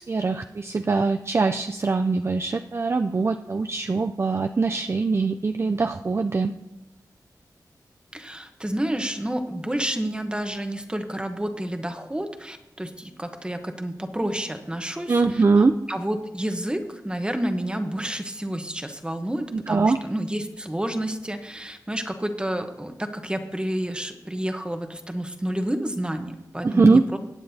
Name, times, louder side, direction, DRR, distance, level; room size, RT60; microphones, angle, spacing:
voice 1, 0.0-6.5 15.1-15.8 19.5-20.0 26.6-27.0, right 4 dB, 35° right, 7 dB, 0.4 m, -22 dB
voice 2, 8.1-27.2, right 1 dB, 15° right, 6 dB, 1.0 m, -30 dB
20.5 x 8.7 x 2.8 m, 0.95 s
wide cardioid pair, 85°, 7 cm